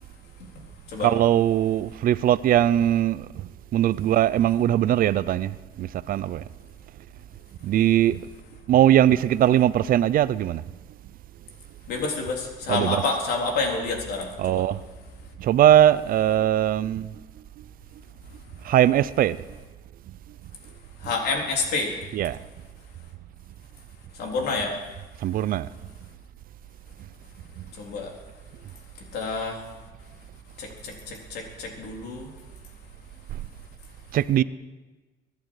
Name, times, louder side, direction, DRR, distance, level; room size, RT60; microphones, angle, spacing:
voice 1, 1.0-6.4 7.6-8.3 8.7-10.6 12.7-13.0 14.4-14.8 15.4-17.1 17.6-17.7 18.6-19.4 21.0-21.1 22.1-22.4 25.2-25.7 27.6-27.7 33.3-33.4 34.1-34.4, right 11 dB, 55° right, 0.6 m, -21 dB
voice 2, 11.9-14.6 21.0-22.0 24.1-24.8 27.7-28.1 29.1-29.7 30.6-32.3, left 3 dB, 75° left, 3.8 m, -28 dB
23.5 x 11.5 x 4.8 m
cardioid pair, 110°, 17 cm